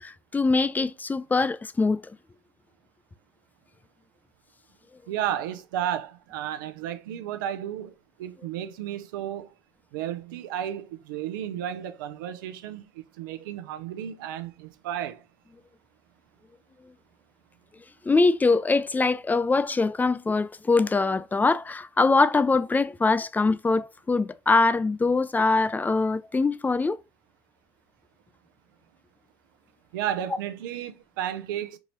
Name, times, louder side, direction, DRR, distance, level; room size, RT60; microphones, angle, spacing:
voice 1, 0.0-2.0 18.0-27.0, left 3 dB, 15° left, 0.4 m, -23 dB
voice 2, 5.1-7.9 8.2-9.5 9.9-15.2 29.9-31.8, right 10 dB, 80° right, 0.6 m, -33 dB
4.7 x 2.6 x 2.9 m
hypercardioid pair, 80°, 11 cm